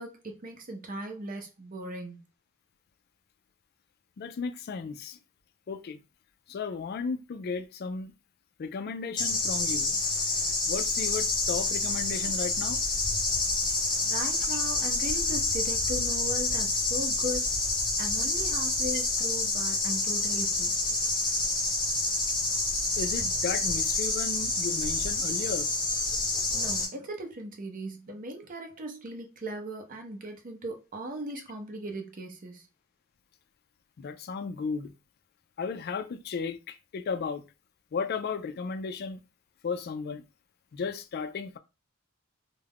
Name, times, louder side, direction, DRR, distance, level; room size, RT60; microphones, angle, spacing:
voice 1, 0.0-2.2 14.0-17.6 18.0-20.7 26.5-32.7, right 1 dB, 40° right, 0.6 m, -38 dB
voice 2, 4.2-5.2 5.7-6.0 6.5-8.1 8.6-10.0 10.7-12.8 23.0-25.7 34.0-34.9 35.6-37.4 37.9-39.2 39.6-40.2 40.7-41.6, left 5 dB, 50° left, 0.3 m, -34 dB
sound 1, 9.2-26.9, left 2 dB, 25° left, 0.8 m, -28 dB
2.3 x 2.1 x 3.4 m
head